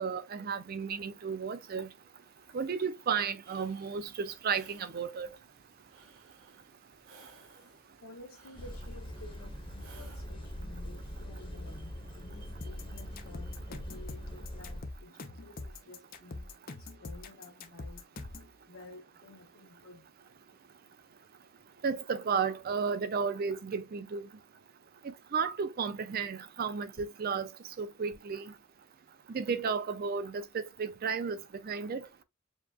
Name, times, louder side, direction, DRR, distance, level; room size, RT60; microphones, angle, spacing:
voice 1, 0.0-1.9 2.5-5.3 21.8-24.2 25.3-27.5 27.8-28.4 29.3-31.4 31.7-32.0, right 5 dB, 45° right, 0.4 m, -33 dB
sound 1, 3.4-10.3, right 4 dB, 75° right, 1.3 m, -59 dB
voice 2, 8.0-16.5 16.8-18.0 18.7-20.1, left 2 dB, 75° left, 0.8 m, -52 dB
sound 2, 8.6-14.8, equal, 25° left, 1.0 m, -42 dB
sound 3, 12.6-18.5, left 3 dB, 45° left, 0.6 m, -43 dB
7.1 x 2.4 x 2.3 m
head